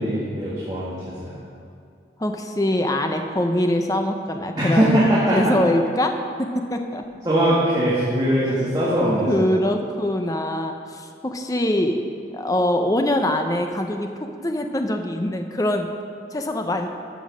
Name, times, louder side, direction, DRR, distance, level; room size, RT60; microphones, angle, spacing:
voice 1, 0.0-1.3 4.6-5.5 7.2-9.5, right 1 dB, 20° right, -8 dB, 1.7 m, -21 dB
voice 2, 2.2-5.1 5.3-6.1 6.4-7.0 9.3-12.0 12.3-15.9 16.3-16.9, left 1 dB, 20° left, 5 dB, 0.6 m, -23 dB
12.5 x 6.2 x 6.2 m, 2.4 s
head